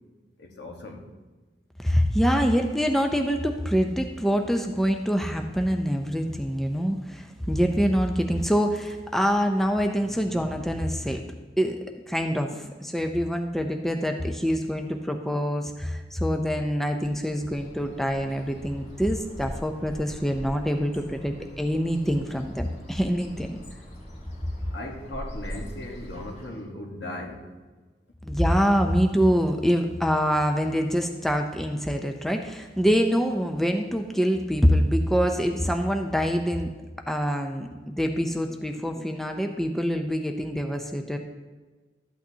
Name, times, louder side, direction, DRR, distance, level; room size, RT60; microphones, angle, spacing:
voice 1, 0.4-1.1 24.7-27.5, left 1 dB, 75° left, 1 dB, 1.3 m, -37 dB
voice 2, 1.8-11.2 11.6-11.8 12.1-23.6 28.2-36.7 37.1-41.2, equal, ahead, 4 dB, 0.4 m, -25 dB
Bird, 17.0-26.7, equal, 40° left, 1.9 m, -43 dB
13.0 x 8.4 x 2.8 m, 1.3 s
head